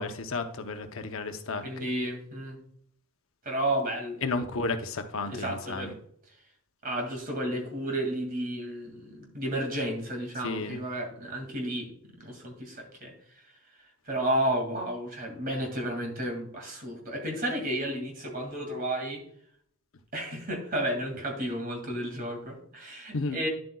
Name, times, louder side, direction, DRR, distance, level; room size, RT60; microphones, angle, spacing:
voice 1, 0.0-1.9 4.2-5.9 10.4-10.8 23.1-23.4, left 3 dB, 65° left, 6 dB, 0.8 m, -33 dB
voice 2, 1.6-2.6 3.4-4.2 5.3-6.0 6.8-11.9 12.2-13.4 13.8-19.2 20.1-23.5, right 1 dB, 40° right, 2 dB, 2.4 m, -32 dB
10.5 x 7.7 x 2.3 m, 0.64 s
head